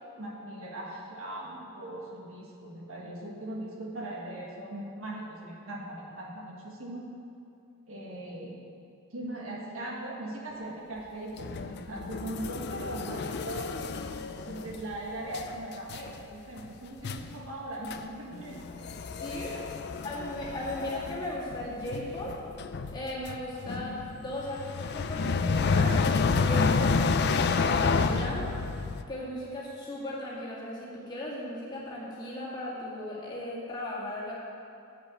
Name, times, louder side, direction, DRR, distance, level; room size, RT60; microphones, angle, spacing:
voice 1, 0.2-7.1 7.9-8.6 9.1-13.9 14.5-18.6 19.2-19.7, right 1 dB, 65° right, -2 dB, 1.6 m, -39 dB
sound 1, 11.4-15.0 15.3-15.6 15.9-16.2 16.6-16.7 17.0-17.3 17.9-18.0 18.3-29.0, left 4 dB, 50° left, 0.4 m, -30 dB
voice 2, 19.1-19.6 20.0-22.4 22.9-26.0 26.4-28.6 29.1-34.3, left 1 dB, 20° left, -6 dB, 2.0 m, -37 dB
7.7 x 6.9 x 8.0 m, 2.7 s
head